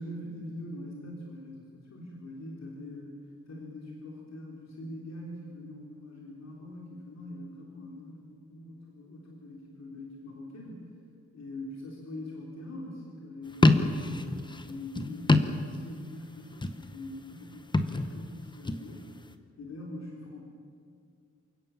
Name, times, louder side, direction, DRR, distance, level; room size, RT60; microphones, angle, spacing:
voice 1, 0.0-3.2 3.5-10.8 11.3-19.1 19.6-20.4, left 1 dB, 60° left, -2 dB, 3.8 m, -43 dB
sound 1, 13.5-16.2 16.4-17.0 17.6-18.9, left 2 dB, 15° left, 1.0 m, -26 dB
28.5 x 16.5 x 7.2 m, 2.4 s
wide cardioid pair, 175°, 29 cm